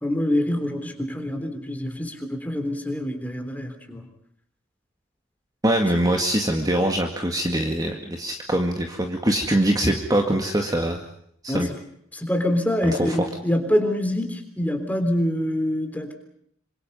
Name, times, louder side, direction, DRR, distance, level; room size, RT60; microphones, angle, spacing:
voice 1, 0.0-4.1 11.5-11.6 12.1-16.1, left 1 dB, 10° left, 5 dB, 3.6 m, -25 dB
voice 2, 5.6-11.0 11.4-11.7 12.8-13.3, right 1 dB, 20° right, 3 dB, 2.0 m, -23 dB
26.5 x 25.5 x 5.5 m, 0.69 s
head